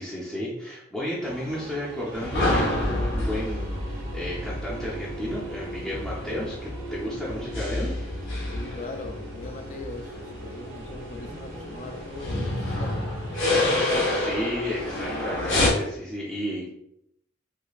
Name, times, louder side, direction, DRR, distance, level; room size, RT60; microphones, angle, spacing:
voice 1, 0.0-6.6 6.9-7.9 13.5-16.7, left 1 dB, ahead, -8 dB, 0.6 m, -33 dB
sound 1, 1.2-15.3, right 2 dB, 70° right, 0.7 m, -42 dB
sound 2, 2.1-15.7, left 1 dB, 60° left, 1.0 m, -29 dB
voice 2, 8.5-13.0 14.8-15.0, left 3 dB, 35° left, 4 dB, 0.4 m, -40 dB
4.9 x 2.2 x 2.3 m, 0.77 s
head